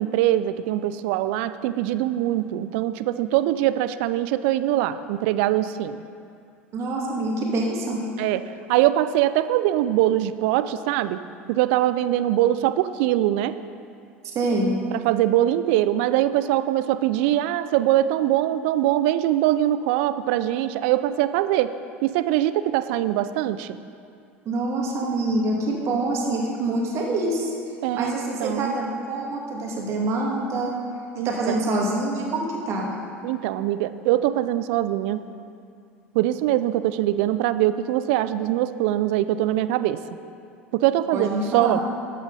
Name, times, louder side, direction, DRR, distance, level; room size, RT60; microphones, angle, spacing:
voice 1, 0.0-6.0 8.2-11.2 11.5-13.6 14.9-21.8 22.0-23.8 27.8-28.8 31.2-31.6 33.2-35.2 36.1-40.0 40.7-41.8, right 13 dB, 60° right, 13 dB, 0.5 m, -22 dB
voice 2, 6.7-8.0 14.3-14.7 24.5-27.5 27.9-30.8 31.2-32.9 41.1-41.8, right 2 dB, 45° right, -2 dB, 2.5 m, -25 dB
13.5 x 8.3 x 4.2 m, 2.4 s
hypercardioid pair, 75°, 7 cm